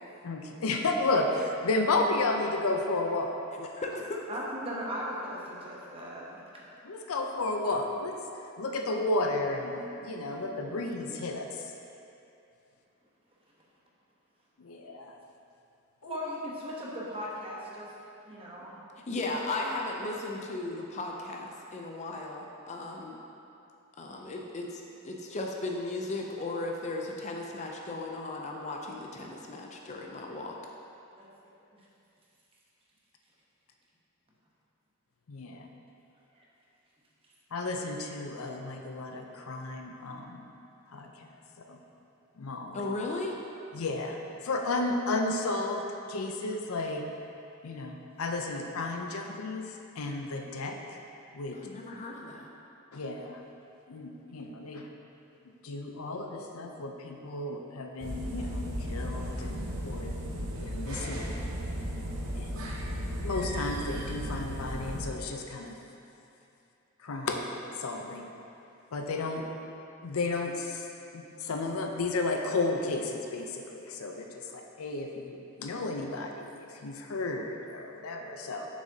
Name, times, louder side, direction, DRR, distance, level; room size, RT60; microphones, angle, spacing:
voice 1, 0.2-3.7 6.8-8.1 8.6-11.5 14.6-15.1 16.0-16.2 35.3-35.7 37.5-40.5 40.9-41.3 41.7-41.8 42.4-42.9 43.7-44.2 44.4-45.8 46.1-47.0 47.6-50.7 51.3-51.6 52.9-53.4 53.9-54.9 55.6-60.2 60.5-61.4 62.3-62.7 63.2-65.7 67.0-67.4 67.8-68.3 68.9-69.4 70.0-70.8 71.1-78.7, left 2 dB, 90° left, 2 dB, 0.6 m, -33 dB
voice 2, 3.7-4.2 19.1-23.2 24.0-30.5 42.7-43.4 51.5-52.5 69.3-69.5, left 2 dB, 35° left, 0 dB, 0.5 m, -36 dB
voice 3, 4.3-6.6 10.2-10.4 16.0-17.9 18.2-18.8 19.3-19.7 31.2-31.8 36.3-36.5 43.7-43.8 74.4-74.5, equal, 25° right, -5 dB, 1.0 m, -39 dB
sound 1, 58.0-65.1, equal, 80° right, 1.0 m, -35 dB
7.4 x 6.2 x 2.8 m, 2.7 s
head